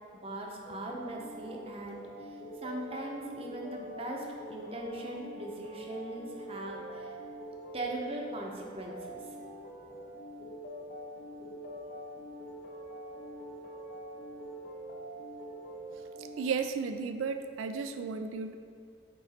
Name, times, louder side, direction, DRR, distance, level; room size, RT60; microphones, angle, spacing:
voice 1, 0.1-7.2 7.7-9.2, right 1 dB, 30° right, 0 dB, 0.7 m, -40 dB
sound 1, 0.6-16.4, right 1 dB, 45° left, 0.8 m, -44 dB
voice 2, 16.4-18.6, right 5 dB, 85° right, 8 dB, 0.3 m, -34 dB
8.8 x 3.1 x 4.2 m, 2.3 s
head